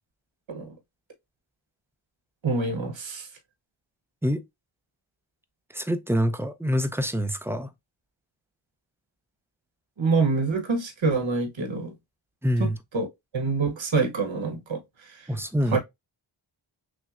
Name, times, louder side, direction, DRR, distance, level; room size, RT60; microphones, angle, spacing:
voice 1, 2.4-3.3 10.0-11.9 12.6-12.7 12.9-13.1 13.3-15.1 15.7-15.8, right 4 dB, 65° right, 1.1 m, -26 dB
voice 2, 5.7-7.7 12.4-12.8 15.3-15.8, equal, 5° right, 0.4 m, -26 dB
6.1 x 2.1 x 2.4 m
wide cardioid pair, 75°, 49 cm